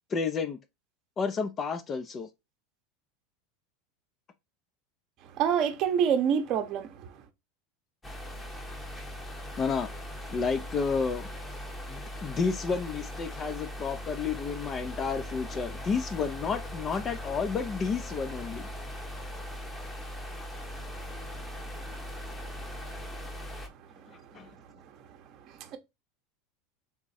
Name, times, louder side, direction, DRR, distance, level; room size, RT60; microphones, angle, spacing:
voice 1, 0.1-0.6 1.2-2.3 9.6-9.9 10.3-11.3 11.9-18.7 24.1-24.5, left 5 dB, 30° left, 0.5 m, -31 dB
voice 2, 5.4-7.1 25.6-25.8, right 8 dB, 50° right, 0.8 m, -26 dB
sound 1, 8.0-23.7, equal, 15° left, 0.9 m, -40 dB
3.6 x 3.0 x 4.1 m
supercardioid pair, 110°, 0 cm